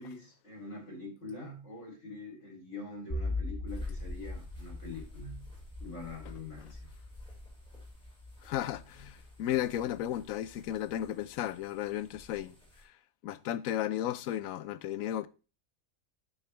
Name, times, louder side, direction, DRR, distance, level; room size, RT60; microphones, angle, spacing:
voice 1, 0.0-5.5 5.8-6.8, left 2 dB, 60° left, 3.7 m, -44 dB
sound 1, 3.1-10.3, left 2 dB, 40° left, 4.3 m, -40 dB
sound 2, 3.7-12.8, left 1 dB, 5° left, 4.8 m, -55 dB
voice 2, 8.4-12.5 13.2-15.3, left 12 dB, 90° left, 1.0 m, -34 dB
9.7 x 7.2 x 3.3 m
omnidirectional pair, 1.4 m